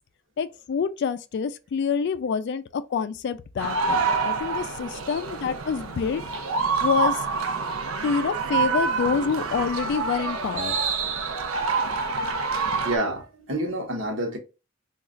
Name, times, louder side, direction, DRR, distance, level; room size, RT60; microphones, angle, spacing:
voice 1, 0.4-6.2 6.8-7.2 8.0-10.8, left 6 dB, 55° left, 0.3 m, -27 dB
sound 1, 3.6-13.0, right 4 dB, 80° right, 0.5 m, -27 dB
voice 2, 11.7-14.4, right 1 dB, 65° right, 0.9 m, -30 dB
3.1 x 2.3 x 3.6 m
head